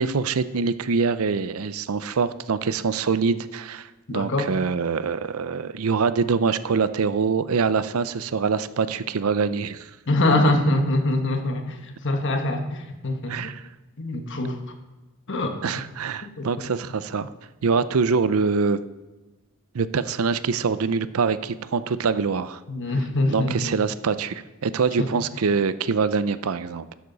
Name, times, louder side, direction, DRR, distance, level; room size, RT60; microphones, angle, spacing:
voice 1, 0.0-9.9 13.3-13.6 15.6-17.3 17.6-18.8 19.7-22.6 23.3-26.9, right 5 dB, 85° right, 15 dB, 0.5 m, -24 dB
voice 2, 4.1-4.5 10.1-13.5 14.0-14.6 15.3-15.8 16.2-16.7 22.7-23.8 25.0-25.1, left 2 dB, 60° left, 5 dB, 1.4 m, -24 dB
11.5 x 11.5 x 4.0 m, 1.1 s
head